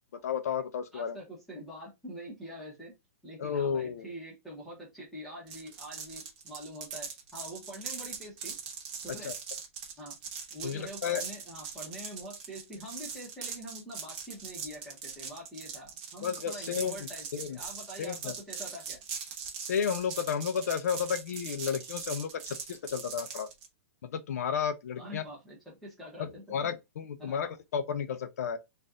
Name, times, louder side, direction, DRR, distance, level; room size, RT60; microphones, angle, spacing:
voice 1, 0.2-1.2 3.4-4.1 9.2-9.3 10.6-11.2 16.2-16.9 17.3-17.6 18.0-18.3 19.6-23.5 24.0-25.2 26.2-28.6, left 7 dB, 75° left, 0.6 m, -32 dB
voice 2, 0.9-2.9 3.2-8.5 9.0-9.3 10.0-10.2 10.5-19.0 25.0-26.7 27.2-27.4, equal, ahead, 1.1 m, -45 dB
sound 1, 5.5-23.7, right 6 dB, 35° right, 1.1 m, -41 dB
4.1 x 2.6 x 3.7 m
hypercardioid pair, 170°, 8 cm